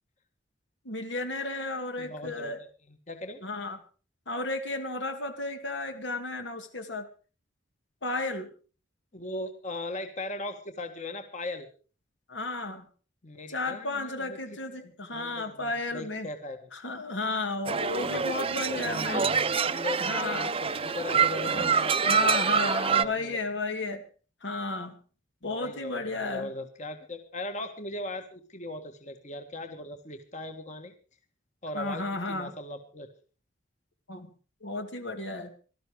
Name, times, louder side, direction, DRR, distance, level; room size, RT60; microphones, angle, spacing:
voice 1, 0.8-2.6 3.4-3.8 4.3-7.1 8.0-8.5 12.3-12.8 13.5-16.3 16.7-19.2 20.0-20.5 22.1-24.0 24.4-25.0 25.4-26.5 31.7-32.5 34.1-34.3 34.6-35.5, left 2 dB, 80° left, 6 dB, 2.3 m, -33 dB
voice 2, 2.0-2.5 2.9-3.4 9.1-11.7 13.2-14.4 15.1-16.7 18.8-23.4 25.4-30.9 31.6-33.1, left 2 dB, 40° left, 6 dB, 1.7 m, -38 dB
sound 1, 17.7-23.1, right 6 dB, 30° right, 0.6 m, -26 dB
18.0 x 13.0 x 4.9 m, 0.38 s
head